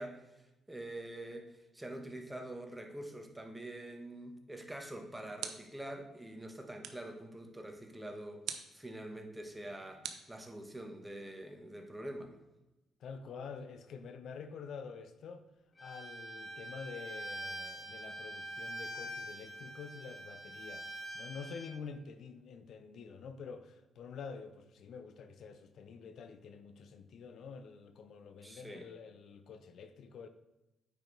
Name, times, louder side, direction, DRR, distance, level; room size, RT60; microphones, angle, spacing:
voice 1, 0.0-12.4 28.4-28.9, right 1 dB, 10° right, 4 dB, 1.2 m, -45 dB
sound 1, 5.4-5.9 6.8-7.2 8.4-8.8 10.0-10.9, right 8 dB, 80° right, 0.7 m, -45 dB
voice 2, 13.0-15.4 15.8-20.9 21.1-30.3, left 5 dB, 65° left, 9 dB, 0.6 m, -48 dB
Bowed string instrument, 15.8-21.7, right 1 dB, 35° left, 1.8 m, -44 dB
9.1 x 5.0 x 4.0 m, 0.98 s
cardioid pair, 90°, 0 cm